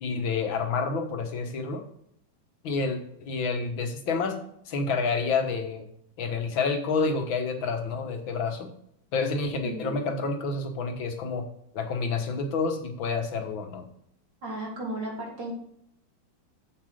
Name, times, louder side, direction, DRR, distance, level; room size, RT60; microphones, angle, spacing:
voice 1, 0.0-1.8 2.6-4.4 4.7-5.9 6.2-8.7 9.1-11.5 11.7-13.9, left 4 dB, 75° left, 5 dB, 2.1 m, -29 dB
voice 2, 9.6-10.0 14.4-15.5, right 1 dB, 60° right, -2 dB, 3.7 m, -34 dB
8.1 x 7.5 x 5.0 m, 0.70 s
omnidirectional pair, 2.2 m